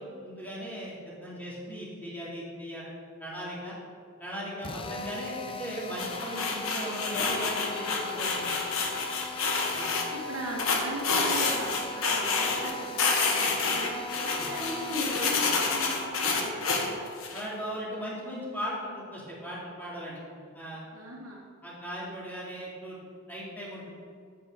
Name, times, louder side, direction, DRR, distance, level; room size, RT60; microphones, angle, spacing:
voice 1, 0.0-2.9 3.2-3.7 4.2-8.5 9.7-9.9 14.4-14.5 17.3-20.2 20.5-20.8 21.6-23.0 23.3-23.9, equal, 10° left, -7 dB, 2.5 m, -38 dB
Drill, 4.6-15.6, left 2 dB, 25° left, 0.5 m, -40 dB
sound 1, 6.0-10.0 10.6-12.7 13.0-17.4, left 4 dB, 80° left, 1.3 m, -28 dB
voice 2, 6.7-7.0 10.1-17.0 20.9-21.5 22.0-22.1, right 1 dB, 75° right, -2 dB, 1.6 m, -38 dB
8.7 x 8.7 x 3.8 m, 2.3 s
head